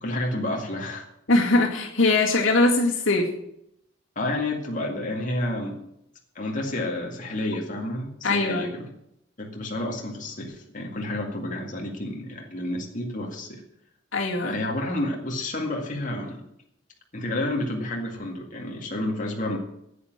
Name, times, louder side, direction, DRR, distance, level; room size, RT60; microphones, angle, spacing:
voice 1, 0.0-1.1 4.2-5.8 6.4-8.9 9.4-13.6 14.4-16.4 17.1-19.6, left 1 dB, 40° left, 0 dB, 2.2 m, -30 dB
voice 2, 1.3-3.3 8.2-8.7 14.1-14.5, left 2 dB, 80° left, -5 dB, 2.2 m, -21 dB
10.0 x 8.6 x 9.1 m, 0.78 s
head